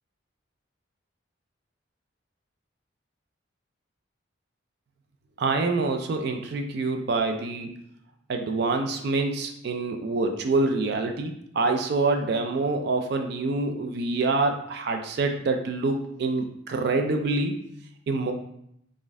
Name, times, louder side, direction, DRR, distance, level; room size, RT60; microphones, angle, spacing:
voice 1, 5.4-7.7 8.3-17.6 18.1-18.3, right 3 dB, 55° right, 5 dB, 0.3 m, -26 dB
4.0 x 2.5 x 3.5 m, 0.74 s
head